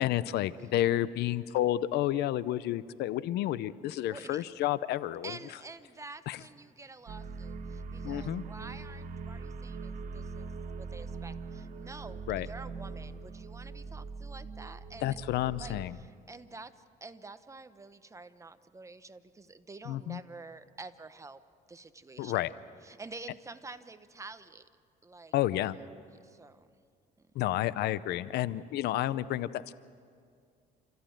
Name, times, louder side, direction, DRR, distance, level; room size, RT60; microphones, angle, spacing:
voice 1, 0.0-5.3 6.3-6.4 8.0-8.4 12.3-12.5 15.0-16.0 19.9-20.2 22.2-22.5 25.3-25.8 27.3-29.7, left 13 dB, 75° left, 17 dB, 0.7 m, -30 dB
voice 2, 4.0-4.4 5.2-15.2 15.6-21.4 21.7-22.5 22.8-24.7 25.0-25.3 26.1-26.7, right 3 dB, 20° right, 11 dB, 0.9 m, -48 dB
sound 1, 7.1-15.8, right 4 dB, 55° right, 1.5 m, -42 dB
29.5 x 14.5 x 9.1 m, 2.3 s
cardioid pair, 110°, 17 cm